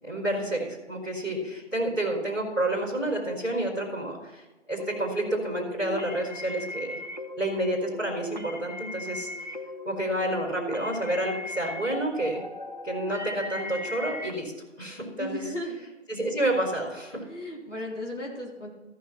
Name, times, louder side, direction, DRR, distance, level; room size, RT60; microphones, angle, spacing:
voice 1, 0.0-7.0 7.4-9.3 9.8-12.4 12.8-14.5 14.8-15.4 16.1-17.3, right 1 dB, 15° left, -11 dB, 2.6 m, -29 dB
sound 1, 4.8-14.3, left 1 dB, 35° left, 0.5 m, -38 dB
voice 2, 15.2-15.8 17.3-18.7, left 1 dB, 70° left, -2 dB, 3.7 m, -35 dB
14.5 x 6.4 x 4.1 m, 1.2 s
figure-of-eight pair, 180°, 37 cm